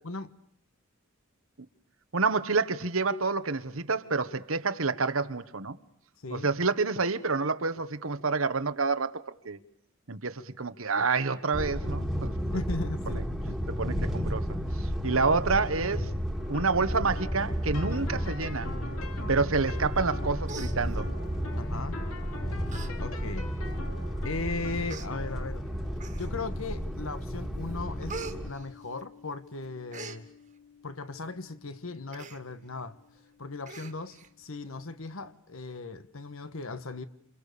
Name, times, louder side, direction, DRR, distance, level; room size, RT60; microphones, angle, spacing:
voice 1, 2.1-5.8 6.3-9.6 10.1-12.6 13.1-13.2 13.7-14.4 14.8-16.1 16.5-18.7 19.3-21.1, right 4 dB, 75° right, 1.4 m, -28 dB
sound 1, 11.5-28.5, equal, ahead, 2.0 m, -33 dB
voice 2, 12.5-13.6 21.6-22.0 23.0-23.7 24.2-25.6 26.2-30.3 30.8-33.0 33.4-37.0, left 3 dB, 75° left, 1.4 m, -37 dB
sound 2, 16.4-33.6, left 2 dB, 90° left, 3.0 m, -47 dB
Human voice, 20.0-20.2 20.4-21.4 22.1-22.3 22.7-22.9 23.3-23.4 24.2-24.3 24.9-25.1 26.0-26.5 27.0-27.4 27.6-29.3 29.6-30.2 32.1-32.4 32.8-32.9 33.2-33.3 33.7-34.3 34.7-34.8, right 4 dB, 35° right, 2.0 m, -43 dB
28.5 x 28.5 x 6.9 m
head